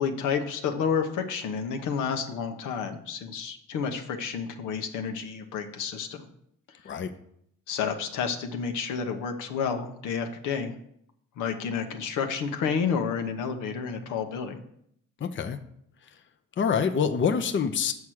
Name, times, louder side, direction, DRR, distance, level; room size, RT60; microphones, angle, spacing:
voice 1, 0.0-6.3 6.8-6.9 7.7-10.8 11.4-14.6, left 6 dB, 85° left, 6 dB, 1.0 m, -30 dB
voice 2, 15.2-15.6 16.6-17.9, left 6 dB, 40° left, 7 dB, 0.7 m, -26 dB
7.1 x 4.7 x 6.2 m, 0.71 s
cardioid pair, 90°, 30 cm